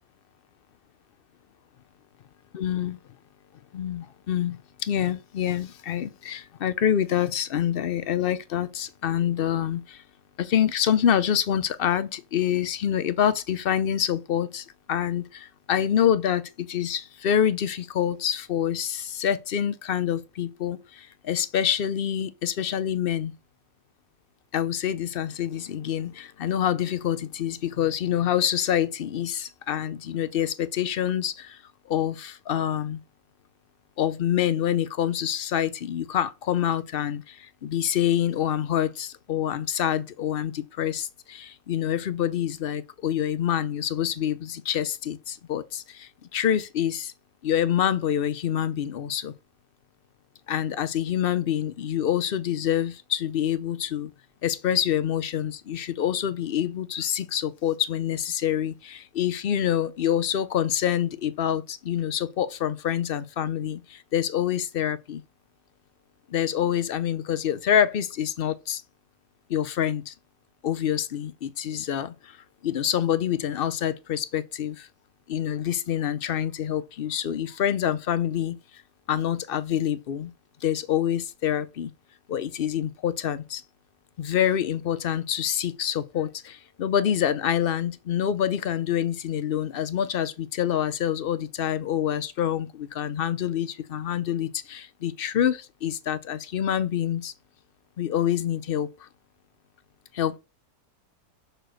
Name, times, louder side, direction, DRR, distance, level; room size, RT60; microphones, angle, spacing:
voice 1, 2.5-3.0 3.7-10.0 10.4-23.3 24.5-31.6 31.9-33.0 34.0-47.1 47.4-49.3 50.5-54.1 54.4-65.2 66.3-68.8 69.5-70.1 70.6-74.9 75.3-78.6 79.1-80.3 80.6-81.9 82.3-83.6 84.2-97.3 98.0-99.1 100.1-100.4, left 10 dB, 60° left, 0.5 m, -26 dB
6.5 x 4.5 x 6.3 m
omnidirectional pair, 1.7 m